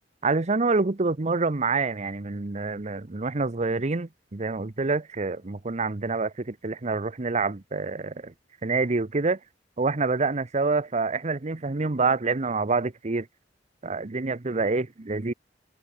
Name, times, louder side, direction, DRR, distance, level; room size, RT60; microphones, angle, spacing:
voice 1, 0.2-8.3 8.6-9.4 9.8-13.3 13.8-15.3, right 3 dB, 40° right, 0.8 m, -27 dB
head